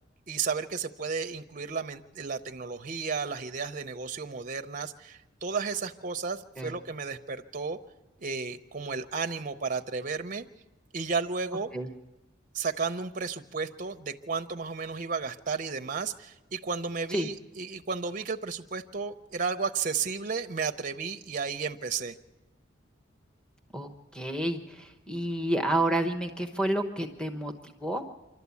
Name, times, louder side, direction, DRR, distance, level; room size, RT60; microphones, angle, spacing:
voice 1, 0.3-7.8 8.2-10.4 10.9-11.7 12.5-22.2, right 5 dB, 40° right, 7 dB, 0.6 m, -33 dB
voice 2, 23.7-28.0, right 1 dB, 5° left, 6 dB, 0.9 m, -30 dB
26.0 x 12.0 x 8.3 m, 1.1 s
head